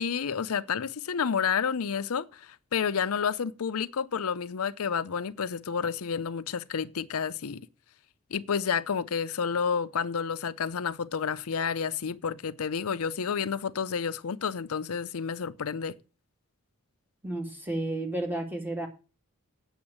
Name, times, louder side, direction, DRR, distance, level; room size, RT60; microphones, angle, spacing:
voice 1, 0.0-7.6 8.3-15.9, left 6 dB, 80° left, 0.6 m, -30 dB
voice 2, 17.2-18.9, right 1 dB, 10° right, 2.4 m, -32 dB
8.8 x 7.2 x 8.6 m
head